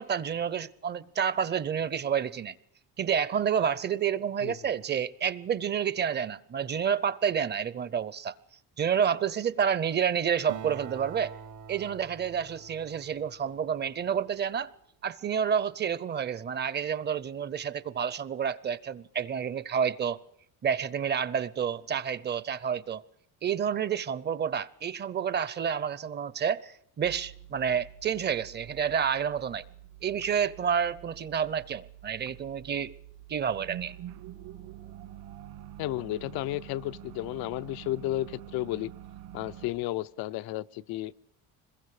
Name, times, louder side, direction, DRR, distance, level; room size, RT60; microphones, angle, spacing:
voice 1, 0.0-2.6 3.0-8.3 8.8-11.4 11.7-14.7 15.0-20.2 20.6-23.0 23.4-29.6 30.0-32.9 33.3-34.0, right 8 dB, 30° right, 0.7 m, -29 dB
Acoustic guitar, 10.5-14.3, right 8 dB, 55° right, 1.1 m, -45 dB
sound 1, 27.0-39.7, right 12 dB, 70° right, 2.5 m, -47 dB
voice 2, 35.8-38.9 39.3-41.1, left 15 dB, 80° left, 0.8 m, -33 dB
26.0 x 22.0 x 4.9 m
cardioid pair, 150°, 36 cm